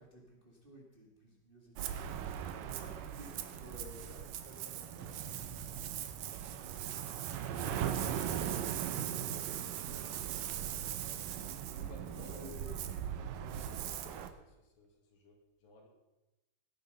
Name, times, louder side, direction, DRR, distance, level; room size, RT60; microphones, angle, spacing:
voice 1, 0.0-11.1 11.4-12.7, equal, 20° right, -1 dB, 2.1 m, -56 dB
Ocean, 1.8-14.3, right 10 dB, 80° right, 2.6 m, -39 dB
sound 1, 5.0-8.9, right 4 dB, 60° right, 2.0 m, -54 dB
voice 2, 9.8-10.1 11.7-12.9 13.3-15.9, left 1 dB, 85° left, 2 dB, 4.2 m, -57 dB
19.0 x 10.5 x 5.5 m, 1.0 s
omnidirectional pair, 3.9 m